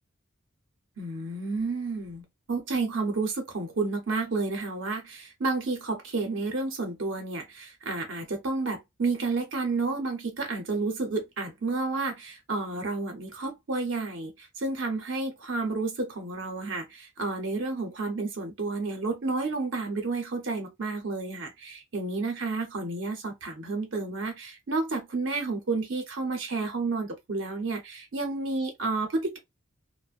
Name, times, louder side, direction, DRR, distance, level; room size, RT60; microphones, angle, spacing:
voice 1, 1.0-29.4, right 3 dB, 60° right, 0.7 m, -31 dB
2.5 x 2.1 x 2.4 m
head